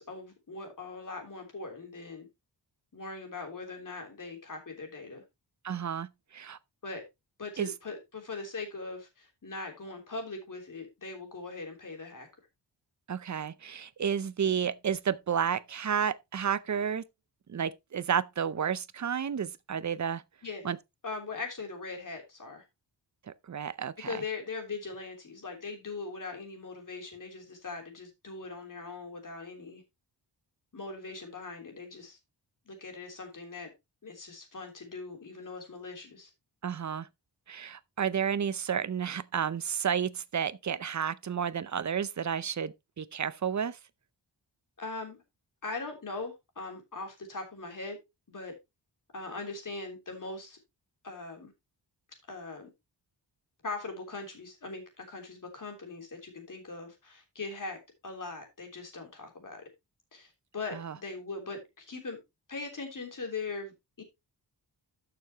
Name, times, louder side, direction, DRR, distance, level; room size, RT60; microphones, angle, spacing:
voice 1, 0.0-2.3 2.9-5.2 6.8-7.0 7.4-12.3 20.4-20.7 21.0-22.6 24.0-29.8 30.7-32.2 32.7-33.7 34.0-36.3 44.8-45.2 45.6-48.0 48.3-48.6 49.1-50.6 51.0-51.5 52.3-52.7 53.6-59.6 60.1-62.2 62.5-64.0, left 3 dB, 45° left, 3.3 m, -40 dB
voice 2, 5.6-6.6 7.6-7.7 13.1-17.0 17.5-20.2 20.6-20.8 23.5-24.1 36.6-37.1 37.5-43.8 60.7-60.9, right 7 dB, 40° right, 0.6 m, -31 dB
12.5 x 6.9 x 2.9 m
wide cardioid pair, 160°, 43 cm